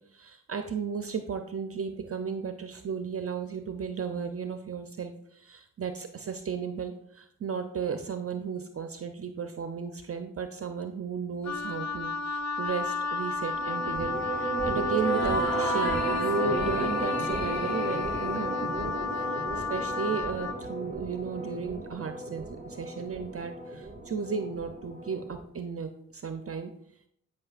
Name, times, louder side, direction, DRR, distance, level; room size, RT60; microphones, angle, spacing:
voice 1, 0.1-19.0 19.3-26.7, right 5 dB, 45° right, 7 dB, 0.6 m, -34 dB
Wind instrument woodwind instrument, 11.4-20.6, left 3 dB, 55° left, 0.5 m, -32 dB
sound 1, 13.5-25.4, right 2 dB, 25° right, 1.4 m, -35 dB
sound 2, 14.9-19.7, equal, 90° left, 2.6 m, -35 dB
10.5 x 5.5 x 2.4 m, 0.72 s
cardioid pair, 55°, 32 cm